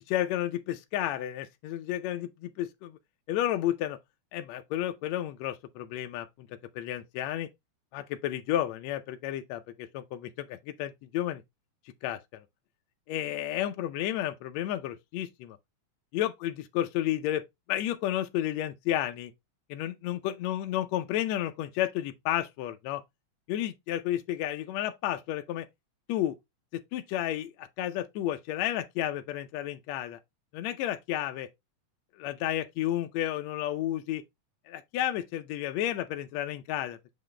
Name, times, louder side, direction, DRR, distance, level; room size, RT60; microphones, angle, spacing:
voice 1, 0.0-3.0 3.3-4.0 4.3-7.5 7.9-11.4 12.0-12.4 13.1-15.6 16.1-17.4 17.7-19.3 19.7-23.0 23.5-25.7 26.1-26.4 26.7-30.2 30.5-31.5 32.2-34.2 34.7-37.0, left 12 dB, 75° left, 1.6 m, -32 dB
7.3 x 4.0 x 3.3 m
omnidirectional pair, 3.6 m